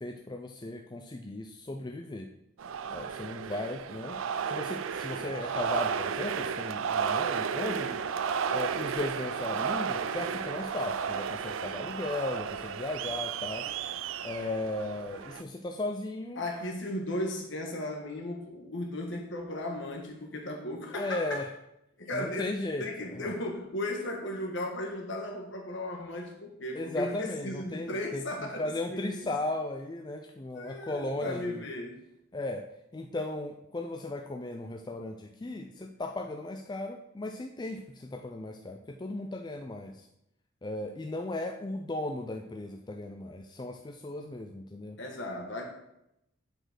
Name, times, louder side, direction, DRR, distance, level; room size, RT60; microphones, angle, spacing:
voice 1, 0.0-2.3 2.9-4.2 4.5-8.0 8.5-13.7 14.2-16.4 20.9-21.5 22.1-22.9 23.1-23.3 26.7-31.6 32.3-32.7 32.9-40.1 40.6-45.0, left 2 dB, 20° left, 3 dB, 0.4 m, -36 dB
sound 1, 2.6-15.4, right 6 dB, 70° right, 0.4 m, -33 dB
voice 2, 16.4-21.5 22.0-22.5 22.8-29.3 30.5-32.0 45.0-45.6, left 1 dB, 60° left, 1 dB, 1.6 m, -36 dB
7.9 x 4.4 x 6.0 m, 0.83 s
head